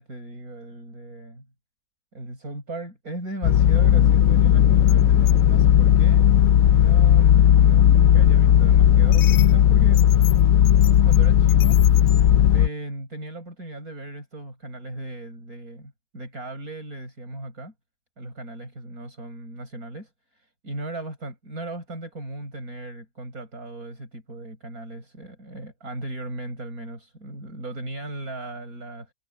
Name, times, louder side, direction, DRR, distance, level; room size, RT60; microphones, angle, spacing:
voice 1, 0.0-1.5 2.1-6.3 6.7-10.0 11.0-11.8 12.5-17.7 18.2-29.1, right 2 dB, 70° right, 8.2 m, -37 dB
sound 1, 3.4-12.7, left 10 dB, 70° left, 1.1 m, -16 dB
omnidirectional pair, 1.6 m